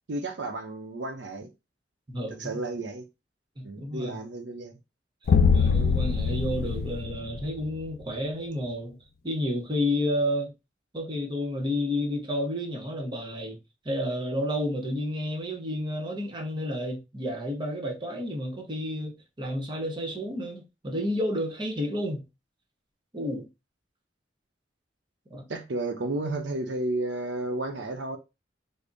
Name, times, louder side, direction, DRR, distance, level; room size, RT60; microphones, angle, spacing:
voice 1, 0.1-1.5 2.4-3.0 3.6-4.7 25.5-28.2, right 2 dB, 80° right, 0.7 m, -32 dB
voice 2, 2.1-2.6 3.6-4.2 5.5-9.0 9.2-10.5 10.9-13.6 13.8-22.2 23.1-23.5 25.3-25.4, left 1 dB, 25° right, 0.8 m, -31 dB
sound 1, 5.3-7.9, left 5 dB, 55° left, 0.3 m, -23 dB
3.5 x 2.1 x 3.9 m
head